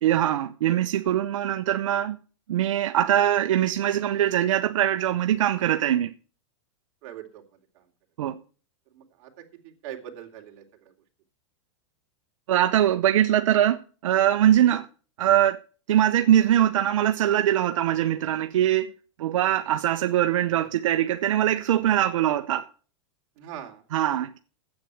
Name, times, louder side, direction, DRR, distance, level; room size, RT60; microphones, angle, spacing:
voice 1, 0.0-2.2 2.5-6.1 8.2-8.4 12.5-14.9 15.2-15.6 15.9-18.9 19.2-22.7 23.9-24.4, right 11 dB, 85° right, 0.8 m, -22 dB
voice 2, 7.0-7.4 8.9-9.3 9.8-10.6 14.5-14.7 23.4-23.8, right 10 dB, 50° right, 2.9 m, -41 dB
9.6 x 8.4 x 7.7 m
supercardioid pair, 145°, 16 cm